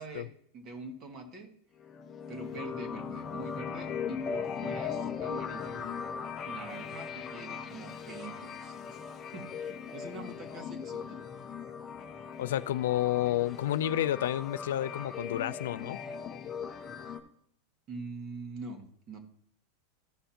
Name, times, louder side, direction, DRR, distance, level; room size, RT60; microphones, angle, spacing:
voice 1, 0.0-1.5 2.3-6.0 6.4-11.3 17.9-19.2, right 3 dB, 30° right, 5 dB, 1.7 m, -44 dB
sound 1, 1.8-17.2, left 6 dB, 20° left, 0.8 m, -39 dB
voice 2, 12.4-16.0, left 13 dB, 85° left, 16 dB, 0.4 m, -30 dB
14.5 x 5.7 x 2.8 m, 0.65 s
supercardioid pair, 155°, 0 cm